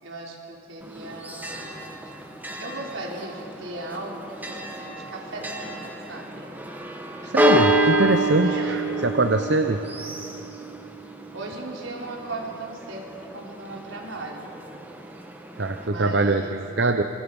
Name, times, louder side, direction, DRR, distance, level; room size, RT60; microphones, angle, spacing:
voice 1, 0.0-1.9 2.6-6.6 8.4-8.9 11.3-14.6 15.8-16.6, right 2 dB, 75° right, -1 dB, 4.2 m, -37 dB
Church bell, 0.8-15.9, right 1 dB, 10° right, 1.4 m, -29 dB
voice 2, 7.2-9.8 15.6-17.0, right 2 dB, 55° right, 7 dB, 0.8 m, -23 dB
27.0 x 25.5 x 5.5 m, 3.0 s
head